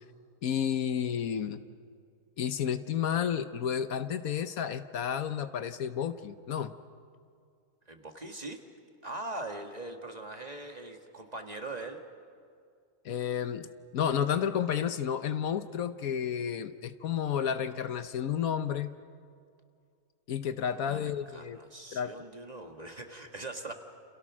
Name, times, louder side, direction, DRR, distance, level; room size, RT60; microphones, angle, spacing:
voice 1, 0.4-1.6 2.4-6.7 13.0-13.7 13.9-18.9 20.3-21.6 21.9-22.1, left 8 dB, 70° left, 11 dB, 1.3 m, -31 dB
voice 2, 7.9-8.6 9.0-12.0 20.7-23.7, right 2 dB, 25° right, 4 dB, 1.8 m, -41 dB
29.5 x 28.5 x 6.2 m, 2.3 s
omnidirectional pair, 1.6 m